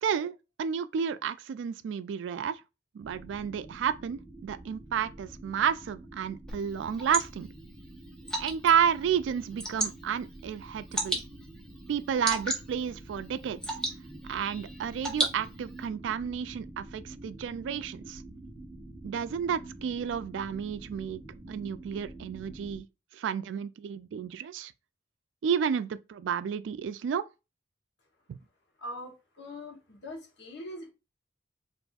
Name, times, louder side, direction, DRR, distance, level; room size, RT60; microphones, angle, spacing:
voice 1, 0.0-2.6 2.9-7.5 8.4-11.2 11.9-13.8 14.3-18.2 19.0-21.2 21.5-22.9 23.1-24.7 25.4-27.3 28.3-28.4, right 7 dB, 90° right, 0.3 m, -31 dB
sound 1, 3.0-22.8, right 2 dB, 35° right, 1.0 m, -47 dB
Water / Drip, 6.5-15.9, right 1 dB, 5° left, 0.6 m, -37 dB
voice 2, 28.8-30.9, left 1 dB, 70° left, 0.9 m, -42 dB
4.0 x 2.6 x 2.3 m
head